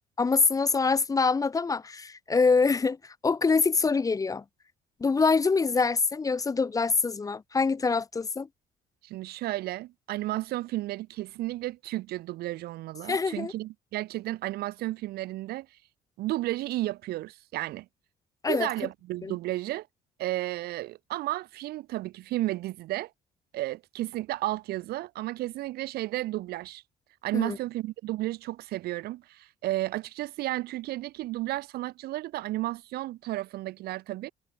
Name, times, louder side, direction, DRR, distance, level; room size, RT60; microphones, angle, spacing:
voice 1, 0.2-4.4 5.0-8.5 13.1-13.5 18.4-18.7 19.2-19.4 27.3-27.6, left 4 dB, 20° left, 0.6 m, -25 dB
voice 2, 9.0-15.7 16.2-17.9 18.5-19.9 20.2-23.1 23.5-26.8 27.2-34.3, right 16 dB, 70° right, 0.5 m, -33 dB
cardioid pair, 110°, 17 cm